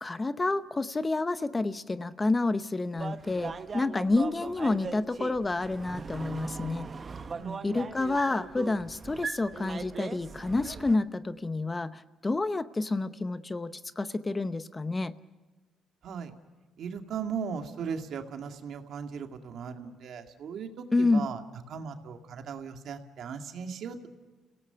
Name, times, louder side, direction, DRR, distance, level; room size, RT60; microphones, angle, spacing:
voice 1, 0.0-6.9 7.6-15.1 20.9-21.3, left 3 dB, 20° left, 13 dB, 0.8 m, -29 dB
sound 1, 3.0-11.0, right 5 dB, 35° right, 1.0 m, -39 dB
voice 2, 7.3-7.9 16.0-16.3 16.8-21.4 21.7-24.1, right 6 dB, 65° right, 5 dB, 2.1 m, -38 dB
30.0 x 18.0 x 5.7 m, 1.3 s
cardioid pair, 95°, 0 cm